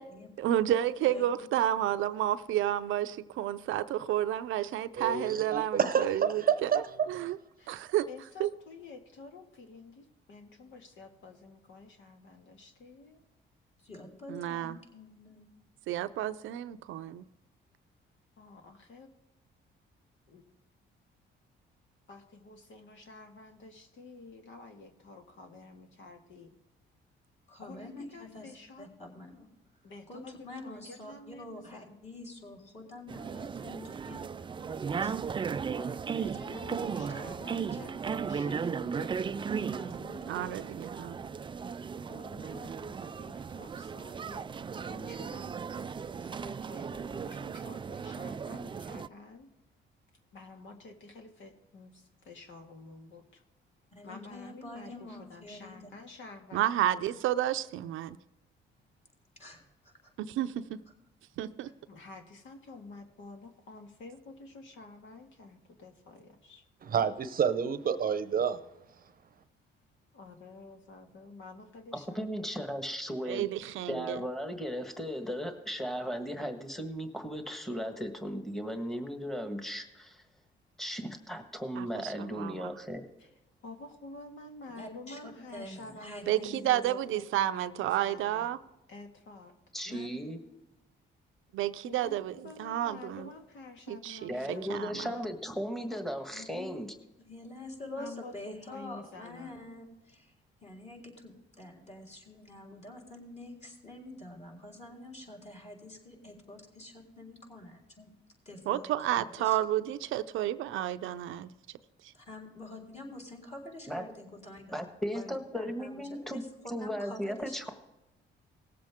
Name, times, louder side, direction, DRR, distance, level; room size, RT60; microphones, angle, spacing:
voice 1, 0.4-6.7 7.1-7.4 7.7-8.1 8.4-8.5 14.3-14.8 15.9-17.2 40.3-41.2 56.5-58.2 60.2-60.8 61.4-61.7 73.3-74.2 81.8-82.7 86.3-88.6 91.5-93.3 93.9-94.3 94.7-95.1 108.7-111.5, right 12 dB, 85° right, 0.6 m, -31 dB
voice 2, 4.9-6.8 7.2-7.3 66.8-68.6, right 7 dB, 45° right, 0.7 m, -29 dB
voice 3, 8.1-13.2 18.4-19.1 20.3-20.4 22.1-26.6 27.6-28.9 29.8-30.3 30.6-32.0 35.7-39.9 40.1-40.7 42.1-49.5 50.3-53.4 54.0-57.3 61.9-66.6 70.1-72.3 83.2-83.3 83.6-88.5 88.9-89.5 91.8-95.2 95.9-96.1 98.0-99.6, left 3 dB, 75° left, 1.9 m, -49 dB
voice 4, 13.8-15.5 27.5-29.5 30.1-35.1 36.2-37.9 39.6-40.5 53.9-55.9 59.4-60.1 84.8-86.8 89.8-90.2 96.3-96.7 97.2-100.3 100.6-108.1 108.5-109.6 112.1-114.8 115.1-116.4 116.8-117.7, left 2 dB, 35° left, 3.9 m, -47 dB
sound 1, 33.1-49.1, right 6 dB, 25° right, 0.3 m, -36 dB
voice 5, 72.1-73.5 73.9-80.2 80.8-83.1 89.7-90.4 94.3-96.9 113.9-114.0 114.7-116.4 116.7-117.7, equal, ahead, 1.4 m, -36 dB
18.5 x 7.7 x 3.6 m
cardioid pair, 90°, 20 cm